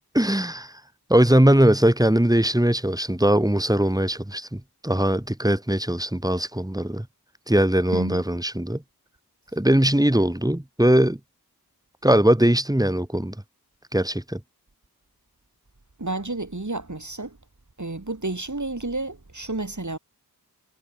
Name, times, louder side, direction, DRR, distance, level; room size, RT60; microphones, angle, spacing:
voice 1, 0.1-0.7 1.1-7.1 7.5-8.8 9.5-11.2 12.0-13.3 13.9-14.4, right 1 dB, 10° right, 2.0 m, -20 dB
voice 2, 7.9-8.2 16.0-17.4 17.8-20.0, right 2 dB, 50° right, 4.3 m, -31 dB
wide cardioid pair, 40°, 38 cm